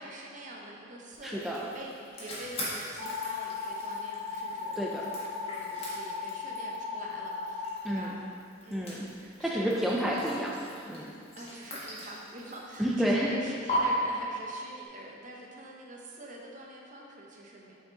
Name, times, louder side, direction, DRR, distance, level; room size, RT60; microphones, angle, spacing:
voice 1, 0.0-1.9 2.2-8.2 8.6-9.7 11.3-17.8, right 1 dB, 45° right, -1 dB, 0.8 m, -45 dB
sound 1, 1.1-13.0 13.7-13.8, left 2 dB, 35° left, 1.4 m, -44 dB
voice 2, 1.2-1.6 4.8-5.0 7.8-8.1 8.7-9.0 9.4-11.1 12.8-13.3, equal, ahead, -4 dB, 0.4 m, -30 dB
sound 2, 3.0-7.8, left 4 dB, 75° left, 1.3 m, -37 dB
6.2 x 4.8 x 3.9 m, 2.4 s
head